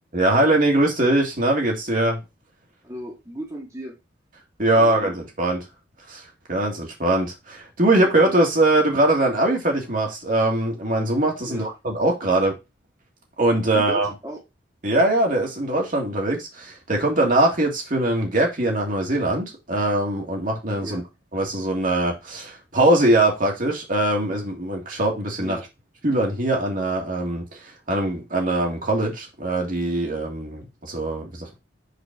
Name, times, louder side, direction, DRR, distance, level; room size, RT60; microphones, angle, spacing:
voice 1, 0.1-2.2 4.6-5.6 6.1-12.5 13.4-14.1 14.8-21.0 21.3-25.6 26.0-31.6, right 1 dB, 50° right, 1.9 m, -22 dB
voice 2, 2.8-3.9 4.7-5.2 11.4-11.7 13.7-14.4 20.8-21.0 25.4-25.6, right 1 dB, 20° right, 1.5 m, -36 dB
5.1 x 4.0 x 5.1 m
head